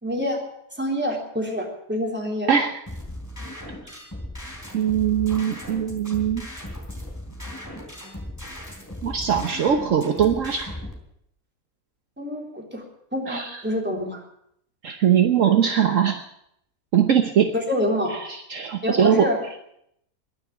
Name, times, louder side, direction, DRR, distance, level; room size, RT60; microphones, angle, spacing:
voice 1, 0.0-0.4 0.8-2.5 12.2-12.8 13.1-14.2 17.5-18.2 18.8-19.4, left 1 dB, 5° right, 0 dB, 3.5 m, -26 dB
voice 2, 2.5-2.8 4.7-6.4 9.0-10.7 13.3-13.6 14.8-16.3 16.9-17.5 18.1-19.3, right 8 dB, 60° right, 6 dB, 1.3 m, -21 dB
sound 1, 2.9-10.9, left 1 dB, 10° left, 3.5 m, -37 dB
21.0 x 7.1 x 8.8 m, 0.74 s
omnidirectional pair, 1.6 m